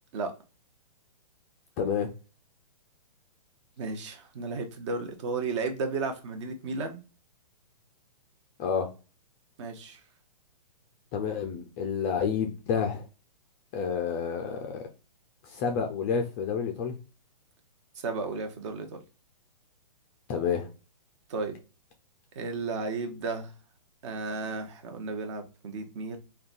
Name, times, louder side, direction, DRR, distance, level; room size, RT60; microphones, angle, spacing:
voice 1, 1.8-2.1 8.6-8.9 11.1-13.0 13.7-14.8 15.4-17.0 20.3-20.7, left 6 dB, 20° left, 0.3 m, -29 dB
voice 2, 3.8-7.0 9.6-10.0 18.0-19.0 21.3-21.6 22.4-23.5 24.0-26.2, right 3 dB, 45° right, 0.8 m, -33 dB
3.6 x 2.3 x 2.4 m
hypercardioid pair, 140°, 21 cm